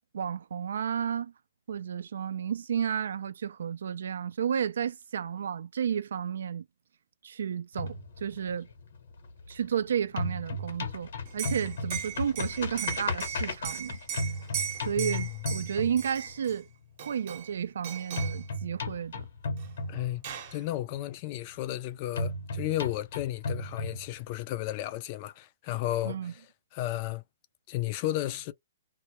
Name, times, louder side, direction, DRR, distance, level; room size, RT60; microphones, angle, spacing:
voice 1, 0.1-1.3 1.7-6.7 7.2-8.0 8.2-8.7 9.5-14.0 14.8-16.7 17.1-19.3 26.0-26.3, right 8 dB, 75° right, 0.3 m, -32 dB
sound 1, 7.7-9.8 10.0-16.5 18.2-20.5 22.2-24.5, left 2 dB, 70° left, 0.9 m, -35 dB
Liquid, 11.3-16.6 17.0-17.6 17.8-18.4 19.6-19.7 20.0-20.6, right 8 dB, 45° right, 0.8 m, -38 dB
voice 2, 15.0-15.4 19.9-26.5 26.7-27.2 27.7-28.5, left 14 dB, 35° left, 0.4 m, -33 dB
2.1 x 2.1 x 2.9 m
hypercardioid pair, 145°, 0 cm